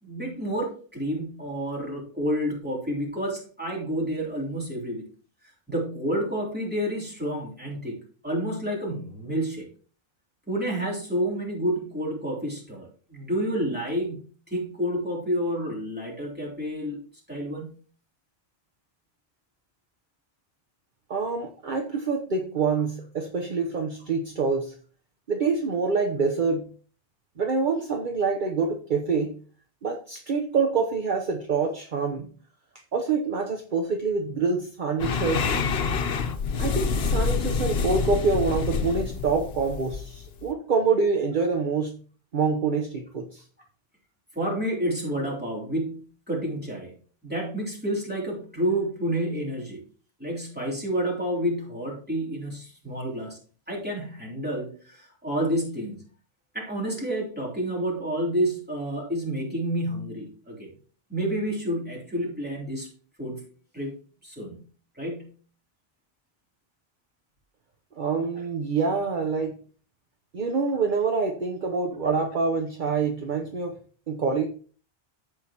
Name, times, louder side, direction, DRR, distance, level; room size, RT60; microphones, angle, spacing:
voice 1, 0.0-5.0 5.7-8.0 8.2-9.7 10.5-17.8 44.3-47.0 47.2-49.8 50.2-53.4 53.7-56.0 56.5-60.7 61.1-62.9 63.2-63.4 63.7-64.0 64.2-64.6 64.9-65.3, equal, 10° right, -4 dB, 3.3 m, -29 dB
voice 2, 21.1-24.8 25.3-26.7 27.4-29.3 29.8-32.3 32.9-35.5 36.6-41.9 42.3-43.4 68.0-69.6 70.3-73.8 74.1-74.5, right 4 dB, 50° right, 3 dB, 1.0 m, -26 dB
sound 1, 35.0-40.5, left 5 dB, 70° left, 1.1 m, -27 dB
14.5 x 5.0 x 2.9 m, 0.41 s
omnidirectional pair, 1.1 m